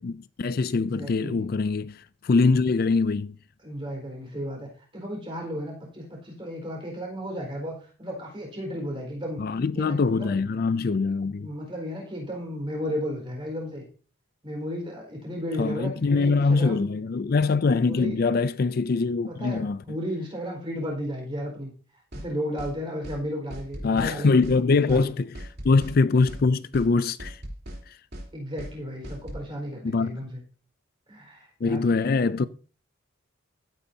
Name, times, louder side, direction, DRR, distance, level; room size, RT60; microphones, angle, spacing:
voice 1, 0.0-3.4 9.4-11.5 15.6-19.8 23.8-27.4 27.9-28.0 29.8-30.2 31.6-32.5, left 4 dB, 45° left, 0.4 m, -23 dB
voice 2, 0.7-1.4 3.6-9.4 9.7-10.4 11.4-13.8 14.4-16.8 17.7-18.2 19.3-21.7 22.1-24.4 24.7-25.1 28.3-30.4 31.1-32.5, equal, 25° right, 4.6 m, -34 dB
sound 1, 22.1-22.3 22.6-22.7 23.0-23.2 23.5-24.1 24.4-24.6 24.9-25.0 25.3-26.0 26.3-26.4 26.7-26.9 27.2-27.8 28.1-28.3 28.6-28.7 29.0-29.4, equal, 50° right, 3.2 m, -38 dB
15.5 x 9.2 x 2.8 m
head